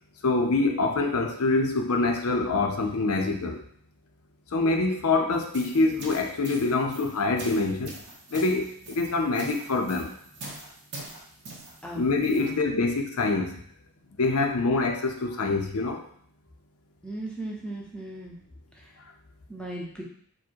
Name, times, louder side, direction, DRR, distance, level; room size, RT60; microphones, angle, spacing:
voice 1, 0.2-3.6 4.5-8.0 8.3-10.1 11.9-13.6 14.2-16.1, left 3 dB, 80° left, 4 dB, 0.6 m, -25 dB
sound 1, 5.3-12.5, right 2 dB, 50° right, 1.0 m, -44 dB
voice 2, 17.0-18.4 18.8-18.9 19.5-20.0, right 1 dB, 5° left, -3 dB, 0.7 m, -37 dB
4.6 x 2.2 x 4.5 m, 0.62 s
head